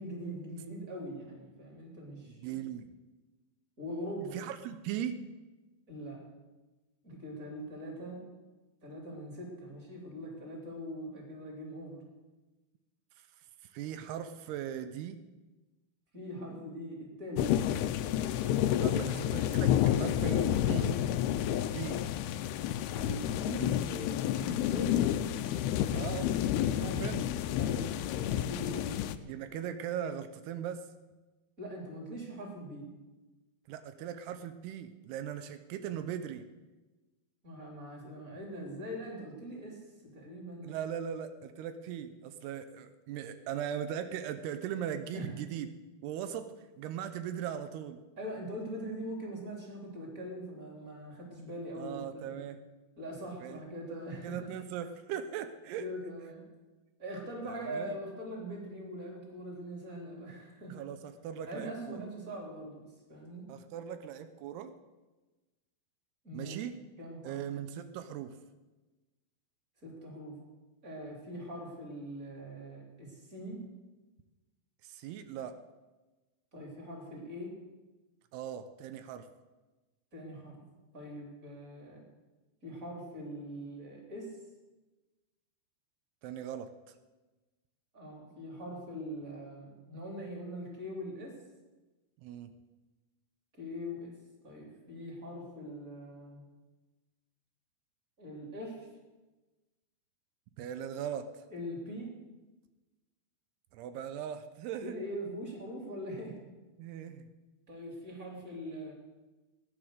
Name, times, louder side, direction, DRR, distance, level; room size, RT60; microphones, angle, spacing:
voice 1, 0.0-2.7 3.8-4.4 5.9-6.2 7.0-8.2 8.8-12.0 16.1-17.5 18.9-19.2 22.9-25.1 26.8-27.1 27.6-29.0 31.6-32.9 37.4-40.7 45.1-45.3 48.2-52.4 53.0-54.5 55.8-56.5 57.0-60.7 61.5-63.5 66.2-66.6 67.0-67.4 69.8-70.4 70.8-73.6 76.5-77.6 80.1-80.6 80.9-82.0 82.6-84.4 87.9-91.4 93.6-94.2 94.4-96.4 98.2-98.9 101.5-102.1 104.8-106.4 107.7-108.9, equal, 20° right, -1 dB, 3.6 m, -42 dB
voice 2, 2.3-2.9 4.3-5.2 13.7-15.2 18.8-21.0 21.6-22.0 25.9-27.2 29.3-30.9 33.7-36.4 40.6-45.7 46.0-48.0 51.7-52.6 53.4-53.6 54.2-55.8 57.4-58.0 60.7-62.0 63.5-64.7 66.3-66.8 67.2-68.3 74.8-75.6 78.3-79.3 86.2-86.9 92.2-92.5 100.6-101.3 103.7-105.0 106.8-107.3, right 9 dB, 85° right, 10 dB, 2.8 m, -39 dB
sound 1, 17.4-29.2, left 11 dB, 85° left, 2.6 m, -30 dB
17.5 x 10.0 x 6.6 m, 1.2 s
omnidirectional pair, 4.5 m